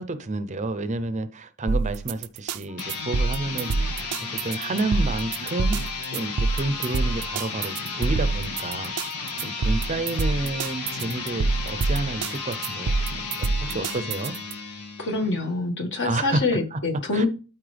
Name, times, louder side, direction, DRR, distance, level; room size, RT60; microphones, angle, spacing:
voice 1, 0.0-4.0 4.3-5.8 6.1-8.9 9.4-14.3 16.0-16.4 16.7-16.8 17.1-17.3, right 2 dB, 30° right, 0.6 m, -30 dB
sound 1, 1.7-14.5, right 4 dB, 90° right, 0.5 m, -26 dB
sound 2, 2.7-15.5, left 4 dB, 90° left, 1.6 m, -34 dB
voice 2, 15.0-17.3, left 3 dB, 55° left, 1.8 m, -26 dB
12.5 x 4.3 x 3.4 m
head